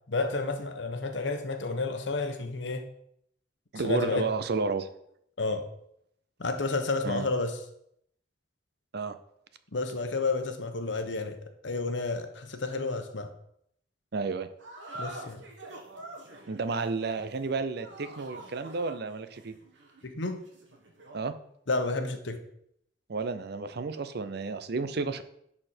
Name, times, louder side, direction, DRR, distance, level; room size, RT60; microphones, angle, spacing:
voice 1, 0.1-2.8 3.8-4.3 5.4-5.6 6.4-7.6 9.7-13.3 15.0-15.4 20.0-20.4 21.7-22.4, left 3 dB, 80° left, 7 dB, 1.1 m, -31 dB
voice 2, 3.7-4.9 7.0-7.3 8.9-9.2 14.1-14.5 16.5-19.5 21.1-21.3 23.1-25.2, right 4 dB, 60° right, 11 dB, 0.6 m, -31 dB
sound 1, 14.6-21.3, right 2 dB, 85° right, 1.6 m, -46 dB
11.5 x 4.4 x 4.4 m, 0.73 s
head